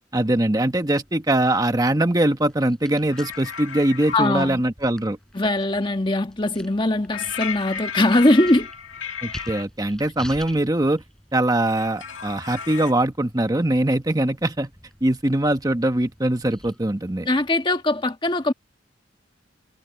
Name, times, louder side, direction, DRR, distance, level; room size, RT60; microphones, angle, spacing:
voice 1, 0.1-5.2 9.2-11.0 11.3-14.7 15.0-17.3, right 1 dB, 20° right, 1.1 m, -22 dB
sound 1, 0.6-17.5, equal, 5° left, 5.1 m, -47 dB
sound 2, 3.1-4.3 7.1-9.6 11.6-12.9, left 7 dB, 85° left, 2.3 m, -34 dB
voice 2, 4.1-4.6 5.3-8.7 17.3-18.5, left 1 dB, 25° left, 1.5 m, -21 dB
head